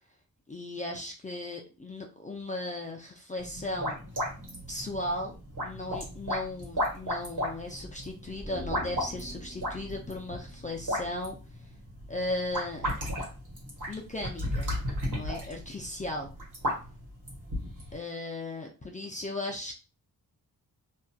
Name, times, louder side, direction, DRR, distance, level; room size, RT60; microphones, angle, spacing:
voice 1, 0.5-4.0 4.7-11.4 12.1-12.8 13.9-14.7 15.1-16.3 17.9-19.8, left 2 dB, 20° left, 1 dB, 0.4 m, -36 dB
sound 1, 3.4-18.0, equal, 55° right, 1.3 m, -35 dB
sound 2, 8.4-11.8 12.1-12.2, left 1 dB, ahead, 0.9 m, -45 dB
2.7 x 2.4 x 2.2 m, 0.32 s
wide cardioid pair, 90°, 37 cm